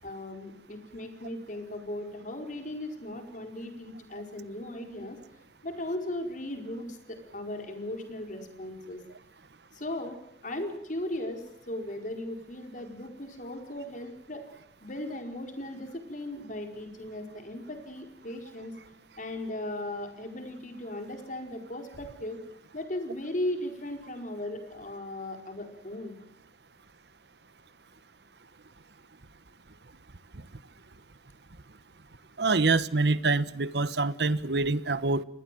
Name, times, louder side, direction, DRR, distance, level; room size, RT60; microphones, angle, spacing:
voice 1, 0.0-5.2 5.6-9.0 9.7-10.2 10.4-14.4 14.8-18.7 19.2-22.4 22.7-26.2, left 1 dB, 45° left, 5 dB, 4.8 m, -37 dB
voice 2, 32.4-35.2, right 3 dB, 65° right, 16 dB, 1.1 m, -25 dB
29.0 x 20.5 x 7.7 m, 0.73 s
head